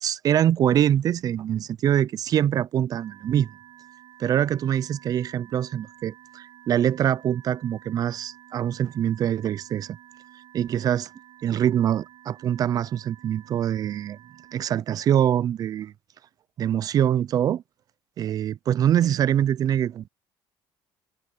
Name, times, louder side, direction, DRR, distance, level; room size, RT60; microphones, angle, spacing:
voice 1, 0.0-3.5 4.2-10.0 10.5-11.1 11.4-14.2 14.5-15.9 16.6-17.6 18.2-20.1, right 10 dB, 45° right, 0.4 m, -24 dB
sound 1, 2.9-14.6, right 12 dB, 60° right, 4.8 m, -51 dB
cardioid pair, 120°, 9 cm